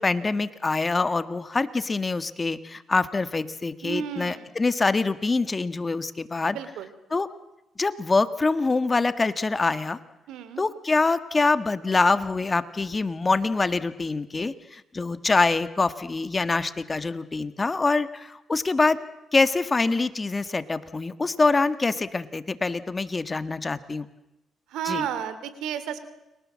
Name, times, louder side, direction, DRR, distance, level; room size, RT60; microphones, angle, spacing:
voice 1, 0.0-6.6 7.1-7.3 7.8-10.0 10.6-19.0 19.3-24.1 24.8-25.1, left 3 dB, 25° left, 12 dB, 1.6 m, -25 dB
voice 2, 3.8-4.5 6.5-6.9 10.3-10.6 24.7-26.0, right 9 dB, 85° right, 12 dB, 3.0 m, -32 dB
30.0 x 24.0 x 7.5 m, 0.96 s
cardioid pair, 90°, 0 cm